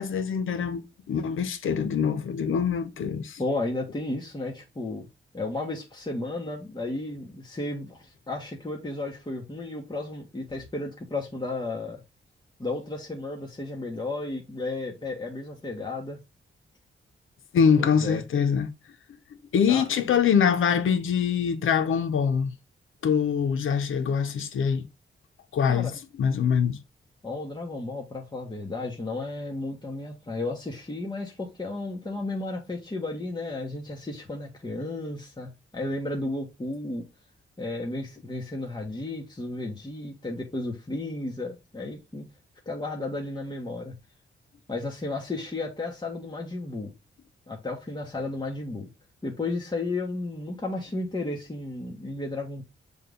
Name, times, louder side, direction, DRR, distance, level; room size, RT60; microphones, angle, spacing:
voice 1, 0.0-3.4 17.5-18.7 19.3-22.5 23.0-24.9 25.5-26.8, left 7 dB, 85° left, 0.9 m, -24 dB
voice 2, 3.4-5.1 5.3-12.0 12.6-16.2 17.8-18.2 19.7-19.8 25.7-25.9 27.2-37.0 37.6-42.3 42.6-44.0 44.7-46.9 47.5-48.9 49.2-52.6, left 2 dB, 20° left, 1.5 m, -33 dB
6.8 x 3.6 x 3.9 m
cardioid pair, 80°, 20 cm